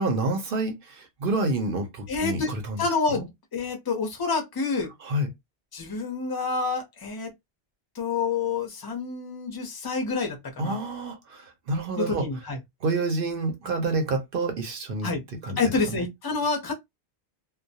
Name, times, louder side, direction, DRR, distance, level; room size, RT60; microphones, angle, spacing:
voice 1, 0.0-3.2 5.0-5.3 10.6-12.3 12.8-15.1 15.4-16.0, right 2 dB, 60° right, 0.7 m, -28 dB
voice 2, 2.1-2.5 2.8-4.9 5.7-7.3 8.0-10.8 12.0-12.6 15.0-15.2 15.6-16.7, left 4 dB, 30° left, 0.5 m, -28 dB
2.2 x 2.0 x 2.7 m
omnidirectional pair, 1.1 m